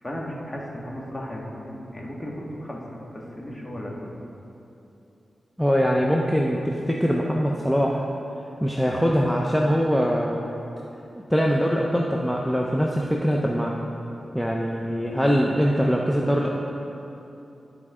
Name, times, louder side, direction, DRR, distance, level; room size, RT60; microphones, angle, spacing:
voice 1, 0.0-2.8 3.1-4.0, equal, 25° left, -3 dB, 1.9 m, -35 dB
voice 2, 5.6-8.0 8.6-10.4 11.3-13.7 14.3-16.6, equal, ahead, -2 dB, 0.7 m, -22 dB
13.0 x 4.8 x 3.7 m, 2.9 s
cardioid pair, 40°, 0 cm